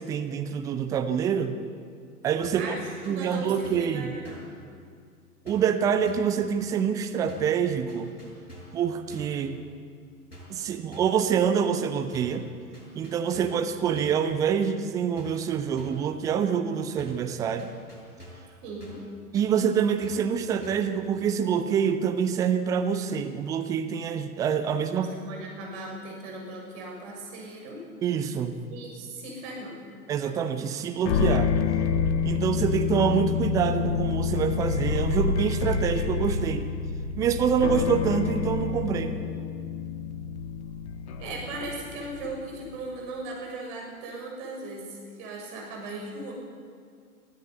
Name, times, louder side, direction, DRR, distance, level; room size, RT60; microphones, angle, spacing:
voice 1, 0.0-1.6 2.2-2.7 3.1-4.1 5.5-8.2 8.7-9.6 10.5-12.5 12.9-17.7 19.3-25.1 28.0-28.6 30.1-31.5 32.2-36.7 37.2-39.2, right 7 dB, 10° right, 8 dB, 0.4 m, -26 dB
sound 1, 2.4-2.7 3.0-4.0 4.2-4.6 5.5-5.8 6.1-6.4 7.3-7.6 7.9-8.8 9.1-9.4 10.3-10.6 10.9-11.2 12.1-12.4 12.7-13.7 13.9-14.3 15.2-15.5 15.8-16.1 17.0-17.3 17.6-18.5 18.8-19.1 20.0-20.3 20.6-20.9, equal, 80° left, 7.6 m, -47 dB
voice 2, 2.5-4.5 18.6-19.0 24.9-27.8 28.7-29.9 41.2-46.3, right 2 dB, 40° right, 0 dB, 6.7 m, -38 dB
sound 2, 31.0-42.4, left 6 dB, 45° left, 1.5 m, -28 dB
23.5 x 14.0 x 8.2 m, 2.2 s
figure-of-eight pair, 105°, 45 cm